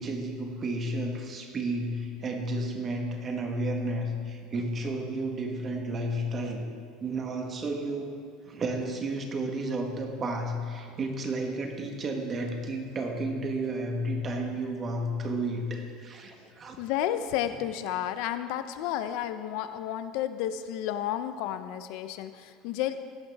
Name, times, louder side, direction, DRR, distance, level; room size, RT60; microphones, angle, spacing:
voice 1, 0.0-6.6 7.0-8.1 8.5-16.8, right 1 dB, 25° right, 3 dB, 1.3 m, -32 dB
voice 2, 16.8-23.0, left 11 dB, 60° left, 10 dB, 0.5 m, -32 dB
16.0 x 11.5 x 3.5 m, 2.2 s
cardioid pair, 165°, 0 cm